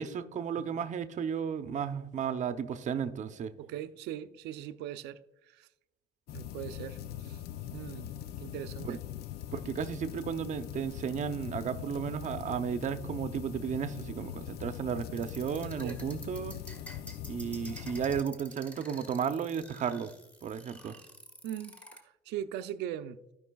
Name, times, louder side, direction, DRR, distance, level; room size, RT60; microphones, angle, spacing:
voice 1, 0.0-3.5 8.9-9.0 9.5-16.6 17.2-20.1 20.4-20.9, right 7 dB, 45° right, 0.7 m, -34 dB
voice 2, 3.6-5.7 6.3-7.4 7.7-8.1 8.4-9.0 9.6-9.8 15.8-16.0 21.4-23.2, right 11 dB, 85° right, 0.5 m, -40 dB
sound 1, 6.3-18.2, left 11 dB, 70° left, 0.5 m, -42 dB
sound 2, 15.1-22.0, right 1 dB, 10° left, 1.6 m, -49 dB
15.5 x 5.4 x 2.3 m
cardioid pair, 110°, 17 cm